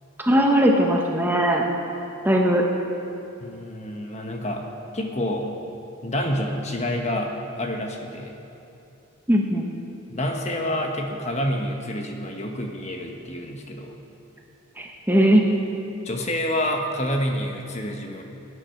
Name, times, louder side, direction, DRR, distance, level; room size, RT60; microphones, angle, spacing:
voice 1, 0.2-1.6 2.2-2.6 9.3-9.7 14.8-15.4, equal, 10° right, 0 dB, 1.1 m, -19 dB
voice 2, 3.4-4.6 4.9-5.5 6.0-7.3 7.6-8.3 10.1-14.0 16.0-18.2, left 1 dB, 30° left, 2 dB, 1.2 m, -28 dB
19.5 x 9.8 x 5.8 m, 2.8 s
head